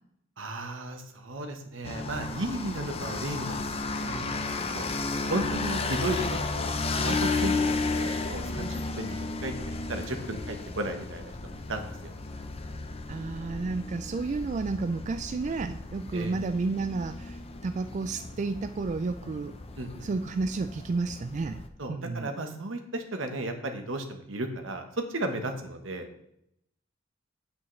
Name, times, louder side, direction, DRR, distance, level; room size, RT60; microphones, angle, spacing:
voice 1, 0.4-4.9 5.3-12.1 16.1-16.4 19.8-20.1 21.8-26.1, right 1 dB, 80° right, 5 dB, 1.2 m, -35 dB
sound 1, 1.8-21.7, left 3 dB, 30° left, 0.6 m, -33 dB
voice 2, 13.1-19.6 20.0-21.6 21.9-22.3, right 3 dB, 40° right, 9 dB, 0.3 m, -31 dB
8.7 x 8.4 x 3.2 m, 0.77 s
head